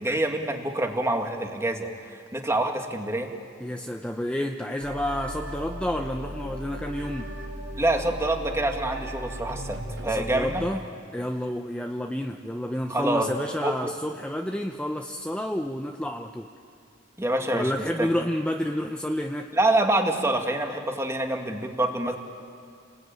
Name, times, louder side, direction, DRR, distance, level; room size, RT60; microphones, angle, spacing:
voice 1, 0.0-3.3 7.8-10.7 12.9-13.3 13.6-13.9 17.2-17.7 18.0-18.1 19.5-22.2, right 1 dB, 15° right, 3 dB, 2.1 m, -26 dB
voice 2, 3.6-7.3 10.2-10.8 11.1-16.5 17.5-19.5, left 1 dB, 5° left, 3 dB, 0.8 m, -30 dB
sound 1, 4.8-10.7, right 1 dB, 85° right, 3.4 m, -36 dB
30.0 x 20.5 x 9.1 m, 2.3 s
head